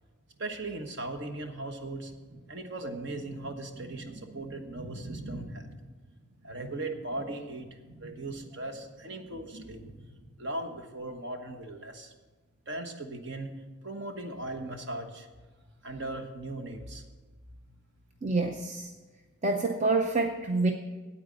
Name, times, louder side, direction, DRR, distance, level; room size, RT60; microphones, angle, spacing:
voice 1, 0.4-6.0 6.4-12.1 12.7-13.5 13.8-15.3 15.8-17.0, right 2 dB, 50° right, 5 dB, 1.2 m, -38 dB
voice 2, 18.2-18.9 19.4-20.7, right 3 dB, 30° right, 3 dB, 0.6 m, -27 dB
9.1 x 8.8 x 7.5 m, 1.3 s
head